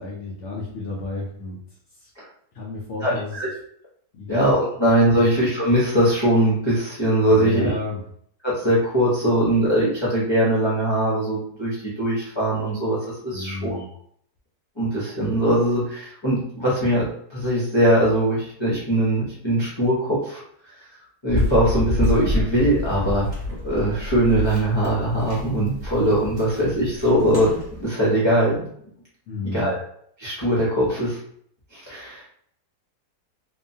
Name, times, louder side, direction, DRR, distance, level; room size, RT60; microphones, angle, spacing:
voice 1, 0.0-1.6 2.0-2.1 2.5-3.3 4.1-4.4 5.1-5.2 7.3-8.0 13.3-13.9 29.3-29.7, left 2 dB, 70° left, -3 dB, 0.7 m, -31 dB
voice 2, 3.0-3.5 4.3-7.7 8.4-13.8 14.8-17.0 17.3-20.9 21.2-23.3 23.6-28.7 29.5-29.8 30.2-31.2 31.7-32.3, right 1 dB, 30° left, -8 dB, 0.5 m, -21 dB
sound 1, 21.3-27.8, left 2 dB, 55° right, 0.5 m, -28 dB
2.9 x 2.2 x 2.6 m, 0.66 s
omnidirectional pair, 1.7 m